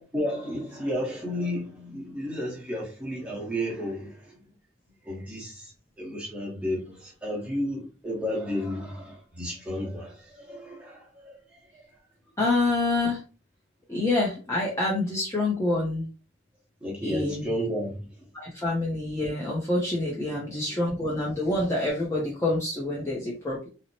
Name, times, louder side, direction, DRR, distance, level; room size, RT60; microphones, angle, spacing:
voice 1, 0.0-4.5 5.0-12.0 16.8-18.3 20.3-20.8, equal, 5° right, 1.0 m, -33 dB
voice 2, 12.4-13.2 13.9-16.1 17.0-17.4 18.3-23.7, left 2 dB, 15° left, 0.5 m, -27 dB
2.8 x 2.0 x 2.7 m
head